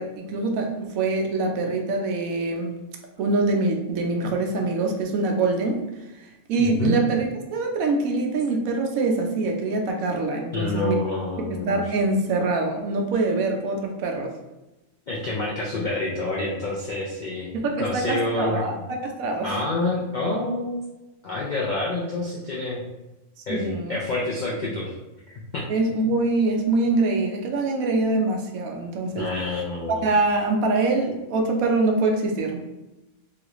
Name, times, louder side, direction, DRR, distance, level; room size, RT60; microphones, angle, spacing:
voice 1, 0.0-2.7 3.2-5.8 6.5-11.0 11.7-14.3 17.5-18.7 19.0-19.5 23.5-24.0 25.7-29.3 29.9-32.7, right 3 dB, 80° right, 2 dB, 1.0 m, -24 dB
voice 2, 6.6-7.0 10.5-11.9 15.1-17.5 17.8-18.8 19.4-20.8 21.2-22.8 23.5-25.0 25.5-25.7 29.2-30.0, left 2 dB, 75° left, -5 dB, 0.4 m, -27 dB
3.1 x 2.4 x 2.9 m, 1.0 s
omnidirectional pair, 1.5 m